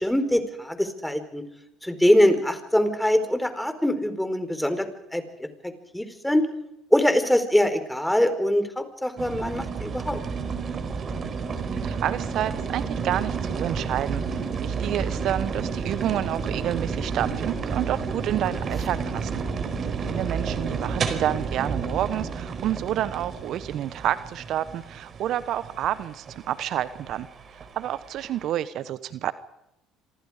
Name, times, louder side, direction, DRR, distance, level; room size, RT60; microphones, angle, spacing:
voice 1, 0.0-1.4 1.8-6.5 6.9-10.2, left 1 dB, 5° left, 9 dB, 4.5 m, -23 dB
sound 1, 9.2-28.5, right 5 dB, 45° right, 4.5 m, -31 dB
voice 2, 11.7-19.4 20.0-27.3 27.5-29.3, right 12 dB, 60° right, 15 dB, 1.1 m, -29 dB
27.0 x 26.0 x 5.0 m, 0.83 s
hypercardioid pair, 65°, 0 cm